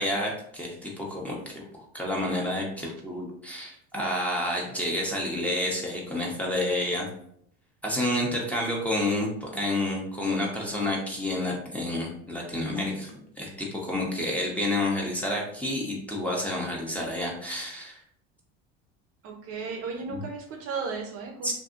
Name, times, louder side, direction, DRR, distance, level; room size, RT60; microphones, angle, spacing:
voice 1, 0.0-1.6 1.9-7.1 7.8-18.0 21.4-21.5, left 1 dB, 5° left, -3 dB, 0.8 m, -29 dB
voice 2, 19.2-21.5, right 5 dB, 50° right, 2 dB, 0.6 m, -35 dB
2.6 x 2.6 x 2.4 m, 0.68 s
supercardioid pair, 90°, 30 cm